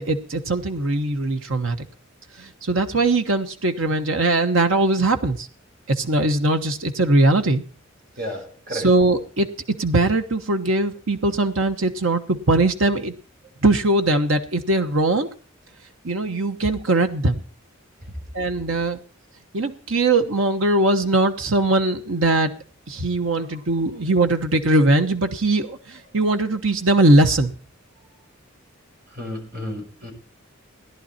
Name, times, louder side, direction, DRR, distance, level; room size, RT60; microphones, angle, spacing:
voice 1, 0.0-1.8 2.4-5.5 5.9-7.6 8.7-9.5 9.8-13.1 13.6-15.3 16.0-17.4 18.3-19.0 19.5-22.5 22.9-27.5, right 2 dB, 70° right, 6 dB, 1.1 m, -20 dB
voice 2, 8.2-8.9 18.0-18.1 23.3-23.8 29.1-30.1, equal, 45° right, 1 dB, 5.5 m, -33 dB
17.5 x 11.0 x 4.3 m, 0.40 s
head